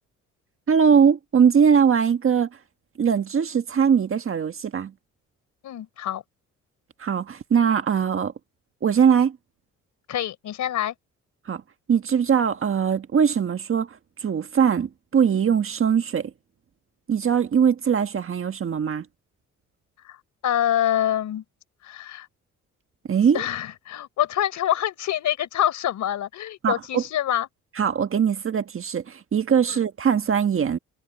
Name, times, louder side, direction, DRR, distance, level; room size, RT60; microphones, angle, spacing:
voice 1, 0.7-2.5 3.0-4.9 7.0-8.3 8.8-9.4 11.5-11.6 11.9-16.3 17.1-19.0 23.1-23.4 26.6-27.0 27.8-30.8, right 7 dB, 45° right, 1.6 m, -21 dB
voice 2, 5.6-6.2 10.1-10.9 20.0-20.2 20.4-21.4 21.8-22.3 23.3-27.5 29.7-29.8, left 11 dB, 75° left, 4.0 m, -26 dB
cardioid pair, 90°, 30 cm